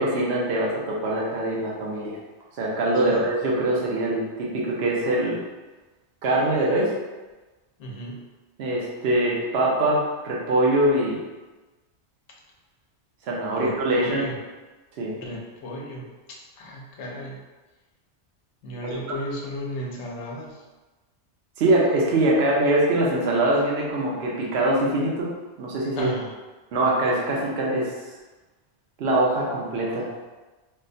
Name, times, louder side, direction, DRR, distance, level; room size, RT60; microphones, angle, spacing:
voice 1, 0.0-2.2 2.6-5.4 6.2-6.9 8.6-11.2 13.2-14.2 15.0-15.1 18.8-19.0 21.6-25.3 25.6-26.1 26.7-27.9 29.0-30.1, right 1 dB, 65° right, -4 dB, 0.9 m, -23 dB
voice 2, 3.0-3.3 7.8-8.2 13.5-14.4 15.2-17.4 18.6-20.6 26.0-26.3, equal, 85° left, -1 dB, 1.0 m, -35 dB
4.2 x 2.1 x 2.6 m, 1.2 s
omnidirectional pair, 1.2 m